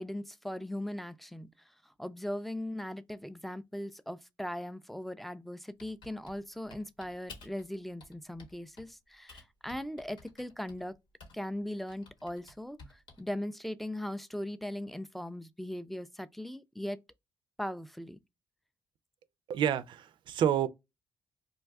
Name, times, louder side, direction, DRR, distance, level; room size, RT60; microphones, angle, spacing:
voice 1, 0.0-11.0 11.3-17.0 17.6-18.2, left 1 dB, ahead, 0.3 m, -39 dB
Typing, 5.8-7.7 8.0-8.9 9.3-11.5 11.9-13.3, left 3 dB, 75° left, 1.0 m, -53 dB
voice 2, 19.5-20.7, right 9 dB, 70° right, 0.4 m, -28 dB
2.5 x 2.3 x 3.4 m
cardioid pair, 65°, 8 cm